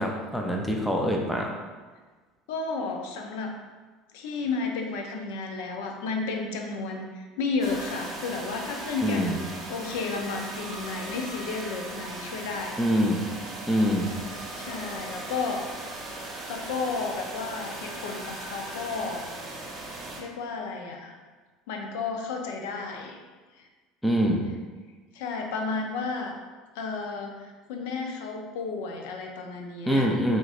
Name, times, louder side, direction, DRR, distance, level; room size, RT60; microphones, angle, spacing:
voice 1, 0.0-1.5 9.0-9.4 12.8-13.3 13.7-14.1 24.0-24.4 29.9-30.4, equal, ahead, 0 dB, 0.5 m, -24 dB
voice 2, 2.5-3.5 4.1-12.9 14.5-15.8 16.5-19.2 20.2-21.2 21.7-23.2 23.5-23.7 25.1-26.4 26.7-30.1, left 4 dB, 85° left, 2 dB, 0.6 m, -32 dB
sound 1, 7.6-20.2, right 2 dB, 30° right, 1.1 m, -38 dB
4.9 x 3.8 x 2.5 m, 1.4 s
cardioid pair, 150°, 0 cm